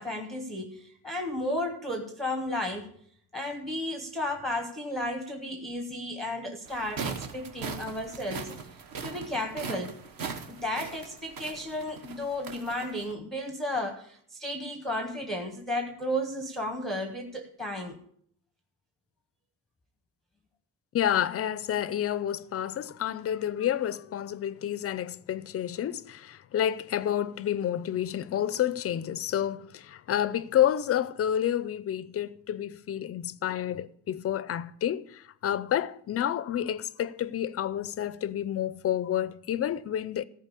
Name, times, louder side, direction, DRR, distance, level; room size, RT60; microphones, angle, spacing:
voice 1, 0.0-2.9 3.3-8.6 9.0-9.9 10.4-18.0, left 1 dB, ahead, 0.7 m, -33 dB
sound 1, 6.7-13.1, right 5 dB, 50° right, 1.3 m, -40 dB
voice 2, 20.9-40.2, left 10 dB, 35° left, 0.4 m, -29 dB
14.5 x 4.9 x 8.3 m
cardioid pair, 155°, 43 cm